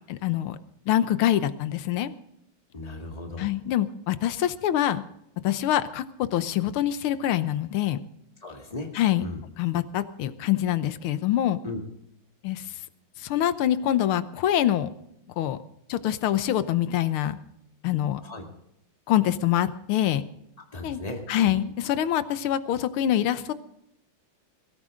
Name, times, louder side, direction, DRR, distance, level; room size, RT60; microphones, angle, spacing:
voice 1, 0.1-0.6 0.9-2.1 3.4-5.0 5.4-8.0 8.9-9.2 9.6-11.6 12.4-12.7 13.2-14.9 15.4-15.6 15.9-17.4 17.8-18.2 19.1-20.2 20.8-21.0 21.3-23.5, left 12 dB, 80° left, 13 dB, 1.7 m, -25 dB
voice 2, 2.7-3.5 8.4-8.9 9.2-9.4 11.6-11.8 18.2-18.4 20.7-21.6, left 2 dB, 20° left, 2 dB, 2.1 m, -36 dB
22.0 x 13.5 x 3.8 m, 0.79 s
omnidirectional pair, 2.3 m